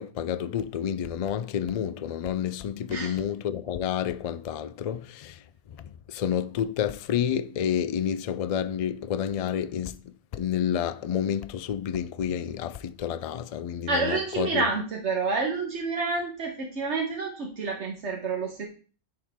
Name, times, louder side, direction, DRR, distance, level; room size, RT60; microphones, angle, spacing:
voice 1, 0.0-5.4 5.8-14.7, left 9 dB, 70° left, 0.3 m, -29 dB
voice 2, 13.9-18.7, right 3 dB, 75° right, 1.5 m, -29 dB
10.5 x 4.4 x 3.6 m
omnidirectional pair, 1.2 m